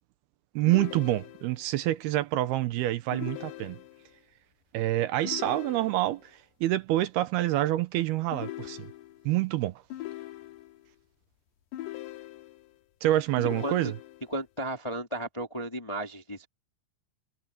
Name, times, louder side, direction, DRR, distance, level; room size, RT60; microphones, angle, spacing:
voice 1, 0.6-3.8 4.7-6.3 6.6-8.9 9.3-9.8 13.0-13.9, right 15 dB, 75° right, 2.6 m, -27 dB
sound 1, 0.7-1.7 3.1-4.2 5.3-6.3 8.3-9.3 9.9-10.9 11.7-12.8 13.4-14.4, left 15 dB, 85° left, 3.6 m, -41 dB
voice 2, 14.3-16.5, right 1 dB, 15° left, 1.0 m, -34 dB
omnidirectional pair, 4.8 m